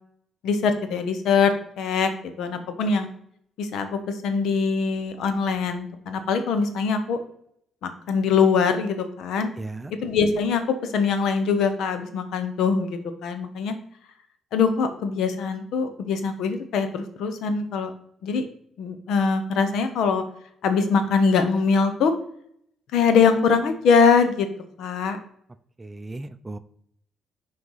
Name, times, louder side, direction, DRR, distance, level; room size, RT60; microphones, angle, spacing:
voice 1, 0.4-2.1 2.4-3.1 3.6-7.2 7.8-9.5 10.0-13.8 14.5-17.9 18.2-18.4 18.8-20.2 20.6-22.1 22.9-24.5 24.8-25.2, left 5 dB, 80° left, 8 dB, 0.9 m, -22 dB
voice 2, 9.6-9.9 25.8-26.6, right 2 dB, 20° right, 12 dB, 0.5 m, -36 dB
6.2 x 4.7 x 5.6 m, 0.67 s
cardioid pair, 90°, 0 cm